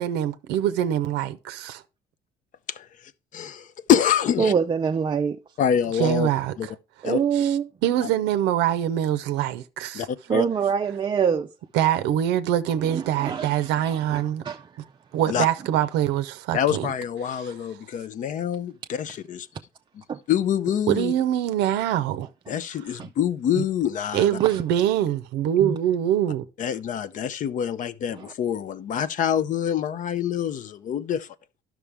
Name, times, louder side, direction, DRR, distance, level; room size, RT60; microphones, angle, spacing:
voice 1, 0.0-1.8 6.0-6.7 7.4-7.6 7.8-10.1 11.7-14.4 15.1-16.9 20.9-22.3 23.6-23.7 24.1-26.5, right 11 dB, 90° right, 0.5 m, -24 dB
voice 2, 2.7-4.5 5.6-6.3 6.6-6.7 7.0-7.2 8.0-8.1 9.9-10.5 15.3-15.5 16.5-19.5 19.9-20.0 20.3-21.1 22.5-24.4 26.6-31.3, left 9 dB, 50° left, 0.5 m, -26 dB
voice 3, 4.4-5.4 7.0-7.6 10.3-11.5 12.8-14.9 20.1-20.2 22.5-22.6 23.0-23.1 24.4-24.6 25.6-25.8 28.1-28.3, right 7 dB, 25° right, 0.4 m, -25 dB
11.0 x 6.0 x 3.4 m
cardioid pair, 110°, 17 cm